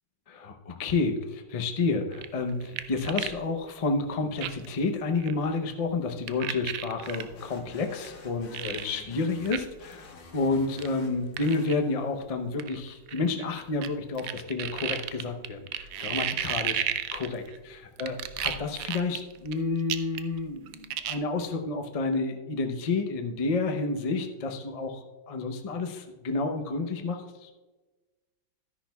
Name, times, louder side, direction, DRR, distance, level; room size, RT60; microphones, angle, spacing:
voice 1, 0.3-27.5, left 3 dB, 60° left, 4 dB, 0.3 m, -30 dB
sound 1, 2.1-3.4 3.7-3.8 4.4-4.7 5.2-5.3 6.3-7.2 8.0-8.1 8.5-8.9 9.5-9.6 9.9-10.0 10.8-10.9 11.4-11.7 12.6-13.9 14.2-17.6 18.0-19.5 19.9-20.4 20.7-21.2, right 11 dB, 75° right, 0.8 m, -32 dB
sound 2, 7.0-12.2, left 4 dB, 80° left, 2.0 m, -50 dB
12.5 x 10.5 x 2.3 m, 1.2 s
omnidirectional pair, 2.0 m